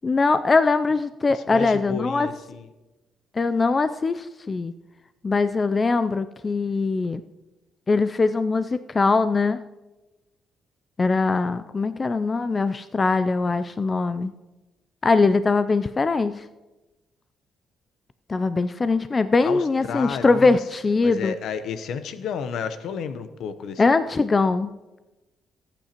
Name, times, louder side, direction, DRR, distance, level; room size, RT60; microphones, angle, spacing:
voice 1, 0.0-2.3 3.3-4.7 5.2-7.2 7.9-9.6 11.0-14.3 15.0-16.4 18.3-21.4 23.8-24.7, left 3 dB, 30° left, 12 dB, 0.4 m, -21 dB
voice 2, 1.3-2.7 19.4-20.6 21.0-23.8, left 6 dB, 75° left, 11 dB, 0.8 m, -32 dB
19.0 x 8.9 x 3.0 m, 1.1 s
cardioid pair, 90°, 0 cm